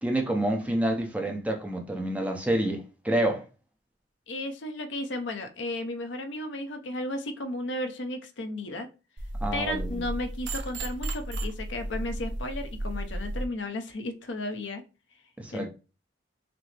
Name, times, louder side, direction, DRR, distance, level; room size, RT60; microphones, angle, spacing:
voice 1, 0.0-3.4 9.4-10.0 15.4-15.7, right 1 dB, 10° right, 0.6 m, -28 dB
voice 2, 4.3-8.9 9.5-14.8 15.5-15.7, left 1 dB, 75° left, 0.7 m, -34 dB
sound 1, 9.2-13.5, right 1 dB, 70° right, 0.7 m, -34 dB
5.9 x 2.0 x 3.2 m
head